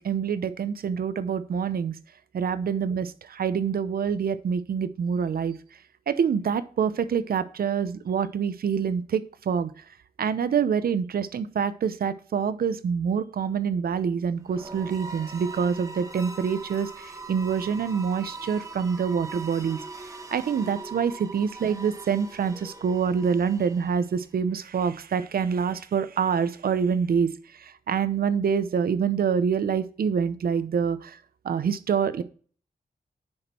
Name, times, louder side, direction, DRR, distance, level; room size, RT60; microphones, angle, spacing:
voice 1, 0.0-2.0 2.3-5.6 6.1-9.7 10.2-19.8 20.3-31.2 31.4-32.2, right 6 dB, 80° right, 13 dB, 0.7 m, -26 dB
sound 1, 14.4-24.3, right 3 dB, 20° right, 1.4 m, -41 dB
9.8 x 6.2 x 4.3 m, 0.42 s
wide cardioid pair, 115°, 15 cm